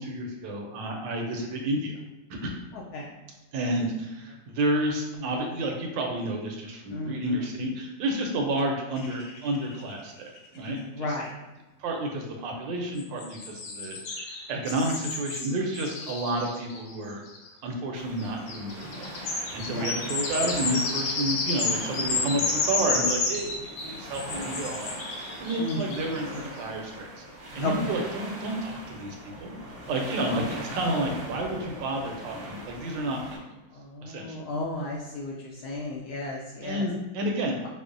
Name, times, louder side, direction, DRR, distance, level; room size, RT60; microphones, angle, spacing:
voice 1, 0.0-1.9 2.3-2.5 3.5-11.1 11.8-17.2 17.6-27.1 27.5-29.2 29.4-33.4 34.0-34.4 36.6-37.7, right 1 dB, 80° right, 1 dB, 1.3 m, -31 dB
voice 2, 2.7-3.1 3.6-3.8 5.1-5.3 6.9-7.5 10.7-11.4 19.7-19.9 25.6-26.0 27.6-27.9 30.3-30.5 33.7-36.9, left 2 dB, 75° left, -2 dB, 0.9 m, -34 dB
sound 1, 9.0-10.0 10.4-10.5 10.7-10.8 13.0-17.5 18.2-26.4, left 3 dB, 90° left, 1.4 m, -31 dB
sound 2, 17.9-33.4, right 1 dB, 45° right, 0.8 m, -40 dB
5.4 x 2.0 x 2.5 m, 1.1 s
omnidirectional pair, 2.0 m